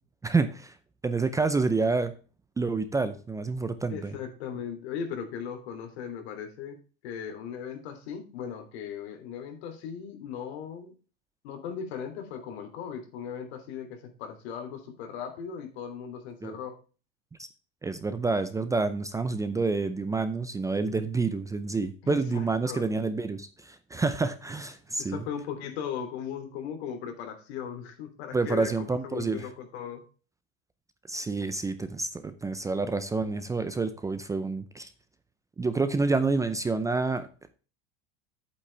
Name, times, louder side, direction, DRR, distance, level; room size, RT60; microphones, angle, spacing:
voice 1, 0.2-0.8 1.0-2.1 2.6-4.2 16.4-16.6 17.4-17.5 17.8-25.2 28.3-29.5 31.1-34.9 35.6-37.3, right 3 dB, 10° right, 11 dB, 0.5 m, -28 dB
voice 2, 3.9-6.8 7.0-10.9 11.4-16.7 22.0-22.8 25.0-30.0, left 8 dB, 75° left, 5 dB, 3.1 m, -38 dB
8.5 x 8.3 x 3.3 m, 0.36 s
supercardioid pair, 135°, 32 cm